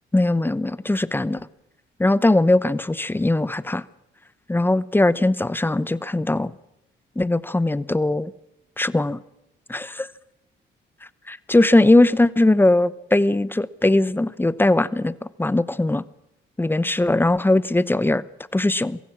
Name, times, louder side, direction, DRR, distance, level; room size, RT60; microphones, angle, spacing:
voice 1, 0.1-1.5 2.0-3.8 4.5-6.5 7.2-8.3 8.8-9.2 9.7-10.1 11.3-15.1 15.4-16.0 16.6-18.2 18.5-19.0, left 2 dB, 10° left, 0.8 m, -20 dB
23.0 x 16.0 x 7.3 m
cardioid pair, 90°, 20 cm